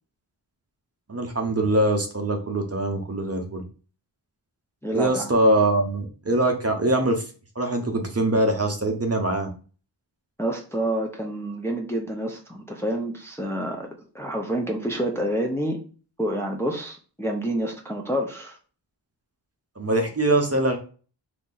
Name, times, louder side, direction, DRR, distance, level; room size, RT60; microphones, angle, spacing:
voice 1, 1.1-3.6 4.9-9.5 19.8-20.8, right 1 dB, 35° right, 3 dB, 0.7 m, -23 dB
voice 2, 4.8-5.3 10.4-13.9 14.1-15.8 16.2-18.6, right 1 dB, 5° left, 1 dB, 0.6 m, -28 dB
2.8 x 2.6 x 3.9 m, 0.38 s
wide cardioid pair, 55°, 46 cm